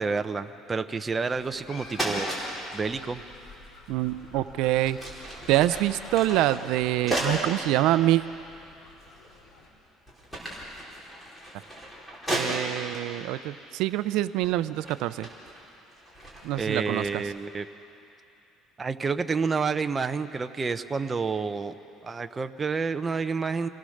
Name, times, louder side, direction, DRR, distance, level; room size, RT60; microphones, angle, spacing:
voice 1, 0.0-3.2 16.6-17.7 18.8-21.7 22.0-23.7, right 4 dB, 15° right, 8 dB, 0.6 m, -29 dB
sound 1, 1.3-9.7, left 3 dB, 70° left, 5.0 m, -49 dB
sound 2, 1.3-1.6 1.9-2.4 4.1-4.2 4.7-7.5 8.2-8.3 9.0-9.5 9.9-13.0 13.9-14.1 14.4-17.4, right 1 dB, 5° left, 4.2 m, -35 dB
voice 2, 3.9-5.0 5.5-8.2 12.3-15.3 16.4-17.2, right 15 dB, 70° right, 14 dB, 0.5 m, -25 dB
27.5 x 18.5 x 6.5 m, 2.8 s
cardioid pair, 160°, 0 cm